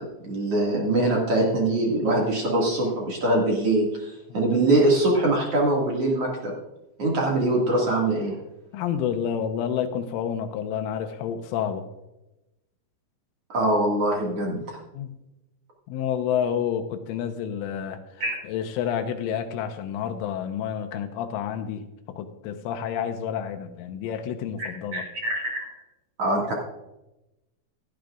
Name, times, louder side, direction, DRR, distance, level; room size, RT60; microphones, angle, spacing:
voice 1, 0.0-6.5 7.0-8.3 13.5-14.6 18.2-18.3 24.6-25.6 26.2-26.5, right 2 dB, 55° right, -2 dB, 1.7 m, -23 dB
voice 2, 8.7-11.9 14.9-15.1 15.9-21.9 22.2-25.0, left 8 dB, 80° left, 7 dB, 3.2 m, -29 dB
17.0 x 13.0 x 2.5 m, 0.93 s
omnidirectional pair, 6.0 m